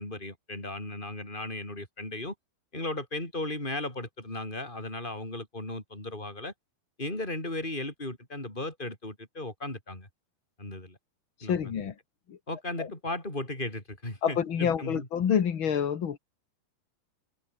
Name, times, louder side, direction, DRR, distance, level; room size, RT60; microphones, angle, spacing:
voice 1, 0.0-2.3 2.7-6.5 7.0-10.1 10.6-11.0 11.4-11.7 12.5-15.1, left 2 dB, 10° left, 8.0 m, -36 dB
voice 2, 11.5-11.9 12.3-12.4 12.8-12.9 14.2-16.2, left 8 dB, 50° left, 1.5 m, -27 dB
omnidirectional pair, 4.6 m